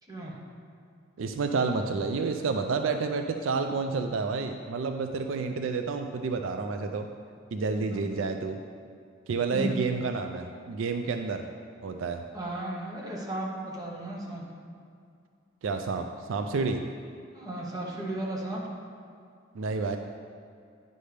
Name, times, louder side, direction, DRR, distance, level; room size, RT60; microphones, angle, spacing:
voice 1, 1.2-7.1 7.5-8.6 9.3-11.4 11.8-12.2 15.6-16.8 19.5-20.0, right 4 dB, 70° right, 6 dB, 0.4 m, -29 dB
voice 2, 12.3-14.4 17.3-18.6, right 1 dB, 20° right, -3 dB, 1.1 m, -35 dB
10.0 x 5.3 x 3.3 m, 2.4 s
head